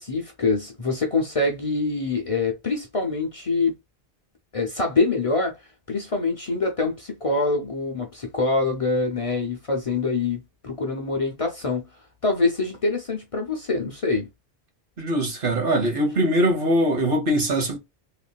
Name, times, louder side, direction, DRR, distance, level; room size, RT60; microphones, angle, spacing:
voice 1, 0.0-3.7 4.5-5.6 5.9-11.9 12.2-14.3, left 3 dB, 40° left, 0.7 m, -25 dB
voice 2, 15.0-17.8, right 1 dB, 60° right, 1.2 m, -22 dB
3.2 x 2.6 x 2.2 m
omnidirectional pair, 1.0 m